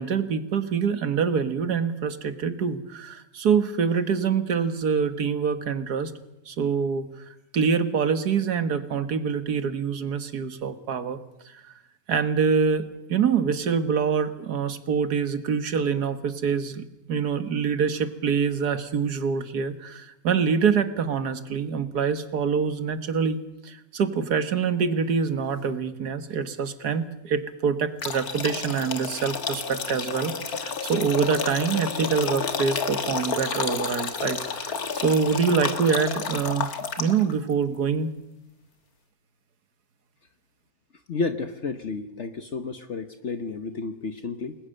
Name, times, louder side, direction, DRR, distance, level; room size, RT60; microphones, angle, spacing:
voice 1, 0.0-6.1 6.5-7.1 7.5-11.2 11.5-11.6 12.1-36.7 37.0-38.1, right 6 dB, 85° right, 10 dB, 2.0 m, -25 dB
sound 1, 28.0-37.3, left 5 dB, 70° left, 2.0 m, -30 dB
voice 2, 41.1-44.6, left 4 dB, 50° left, 8 dB, 1.3 m, -31 dB
29.5 x 20.5 x 6.6 m, 0.87 s
omnidirectional pair, 1.6 m